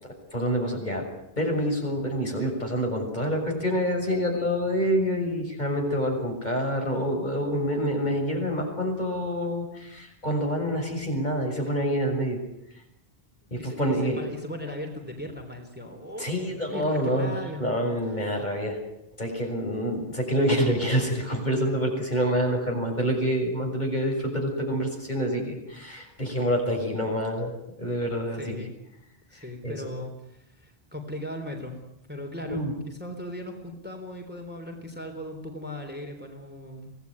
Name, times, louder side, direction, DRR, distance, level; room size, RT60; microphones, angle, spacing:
voice 1, 0.0-1.0 1.4-12.4 13.5-14.3 16.2-18.8 19.2-27.5 27.8-28.6 29.4-29.9 32.5-32.7, equal, 45° left, 1 dB, 7.0 m, -27 dB
voice 2, 13.6-16.4 16.7-18.0 28.3-28.7 29.3-31.8 32.1-37.0, left 1 dB, 10° right, 3 dB, 3.6 m, -38 dB
25.0 x 18.5 x 9.6 m, 0.81 s
omnidirectional pair, 1.0 m